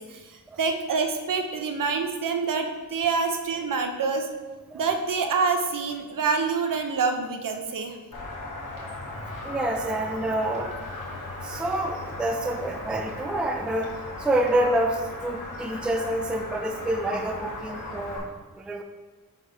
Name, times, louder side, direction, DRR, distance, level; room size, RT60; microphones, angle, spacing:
voice 1, 0.0-4.3 4.7-8.0, right 4 dB, 65° right, 5 dB, 0.7 m, -26 dB
sound 1, 8.1-18.2, left 2 dB, 60° left, 1.3 m, -37 dB
voice 2, 9.1-18.2 18.6-18.8, right 1 dB, 5° right, 4 dB, 0.3 m, -28 dB
4.8 x 4.2 x 4.9 m, 1.3 s
wide cardioid pair, 145°, 35 cm